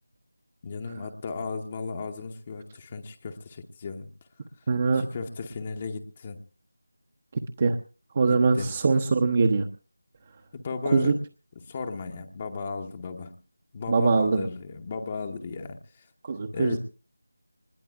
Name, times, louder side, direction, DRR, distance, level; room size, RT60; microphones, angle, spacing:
voice 1, 0.6-4.1 4.9-6.4 8.3-8.7 10.5-11.2 11.6-13.3 13.7-16.1 16.5-16.8, left 4 dB, 25° left, 4 dB, 1.0 m, -35 dB
voice 2, 4.7-5.1 7.3-7.8 8.1-9.7 10.9-11.1 13.9-14.5 16.2-16.8, right 4 dB, 30° right, 5 dB, 0.9 m, -22 dB
26.0 x 20.5 x 2.4 m, 0.34 s
figure-of-eight pair, 165°, 0 cm